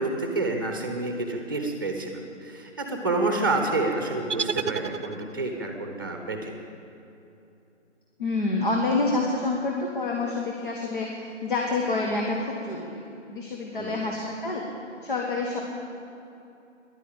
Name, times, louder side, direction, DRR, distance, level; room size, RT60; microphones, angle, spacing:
voice 1, 0.0-6.5 13.8-14.0, right 2 dB, 20° right, 3 dB, 1.1 m, -28 dB
sound 1, 4.3-5.6, right 6 dB, 75° right, 0.7 m, -31 dB
voice 2, 8.2-13.0 13.3-14.6 15.0-15.6, left 3 dB, 45° left, -1 dB, 1.7 m, -27 dB
13.5 x 11.5 x 8.8 m, 2.8 s
hypercardioid pair, 175°, 36 cm